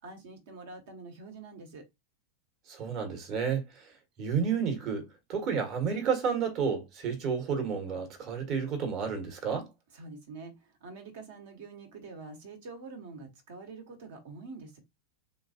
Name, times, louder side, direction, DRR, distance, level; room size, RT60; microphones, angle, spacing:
voice 1, 0.0-1.8 9.9-14.8, right 3 dB, 55° right, 1.3 m, -46 dB
voice 2, 2.7-3.8 4.2-9.7, right 6 dB, 40° right, 1.4 m, -31 dB
3.3 x 2.9 x 2.7 m
figure-of-eight pair, 90°, 0 cm